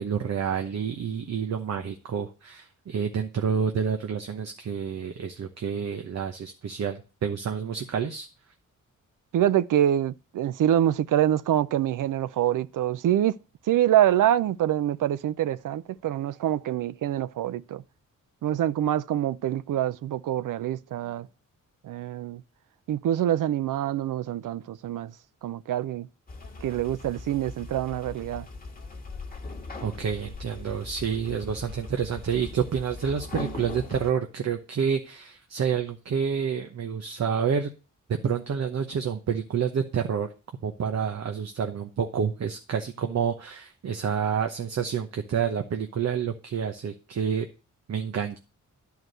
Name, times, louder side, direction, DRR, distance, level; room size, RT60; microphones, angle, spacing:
voice 1, 0.0-8.3 29.8-37.7 38.1-40.3 40.6-47.5 47.9-48.4, right 7 dB, 55° right, 1.0 m, -28 dB
voice 2, 9.3-13.4 13.7-17.8 18.4-21.3 21.8-22.4 22.9-25.1 25.4-26.1 26.6-28.5, right 11 dB, 85° right, 0.5 m, -25 dB
sound 1, 26.3-34.1, left 3 dB, 30° left, 1.6 m, -40 dB
11.0 x 4.7 x 6.7 m
wide cardioid pair, 140°, 31 cm